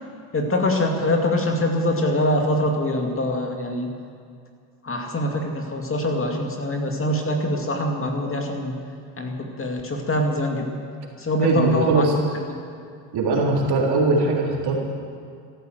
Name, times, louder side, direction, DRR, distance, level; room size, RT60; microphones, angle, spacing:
voice 1, 0.3-3.9 4.8-8.8 9.2-10.7 11.2-12.6, left 1 dB, 25° left, 2 dB, 2.3 m, -24 dB
voice 2, 11.4-12.1 13.1-14.7, right 3 dB, 55° right, -2 dB, 3.8 m, -21 dB
14.0 x 12.0 x 7.9 m, 2.3 s
hypercardioid pair, 75°, 48 cm